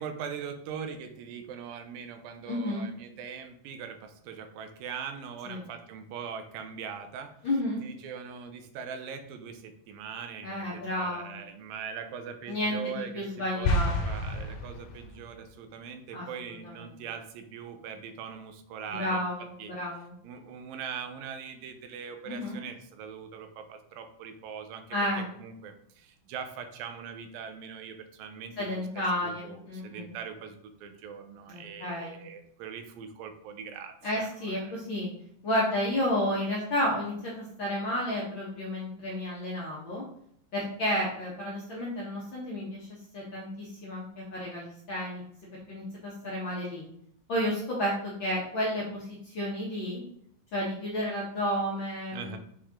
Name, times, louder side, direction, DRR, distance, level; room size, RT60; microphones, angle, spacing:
voice 1, 0.0-7.3 7.8-19.3 19.6-19.7 20.2-28.7 29.2-34.8 52.1-52.4, right 7 dB, 85° right, 7 dB, 2.5 m, -41 dB
voice 2, 2.5-2.9 5.5-5.6 7.4-7.8 10.4-11.3 12.5-14.0 16.1-16.3 16.6-17.0 18.9-20.1 22.3-22.6 24.9-25.2 28.6-30.1 31.5-32.2 34.0-35.1 35.4-40.0 40.5-42.9 43.1-45.2 45.7-46.8 47.3-50.0 50.5-52.4, left 1 dB, 55° left, -5 dB, 1.4 m, -31 dB
sound 1, 13.6-15.3, left 1 dB, 70° left, 2.1 m, -29 dB
7.1 x 4.5 x 3.7 m, 0.69 s
omnidirectional pair, 4.0 m